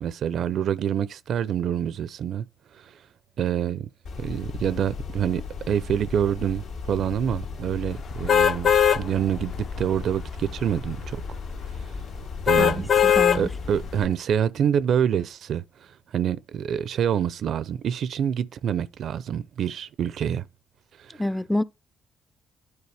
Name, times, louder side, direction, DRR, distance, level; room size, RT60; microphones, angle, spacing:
voice 1, 0.0-2.5 2.7-3.0 3.4-3.9 4.2-11.2 11.7-12.0 12.5-12.9 13.3-20.5 21.0-21.2, right 9 dB, 65° right, 0.5 m, -27 dB
sound 1, 4.0-14.0, left 5 dB, 80° left, 2.3 m, -36 dB
sound 2, 8.3-9.0 9.5-9.7 12.5-13.4 14.0-14.1, left 8 dB, 55° left, 0.7 m, -18 dB
voice 2, 12.6-13.5 21.2-21.6, left 1 dB, 5° left, 0.4 m, -27 dB
9.6 x 4.6 x 3.3 m
cardioid pair, 90°, 0 cm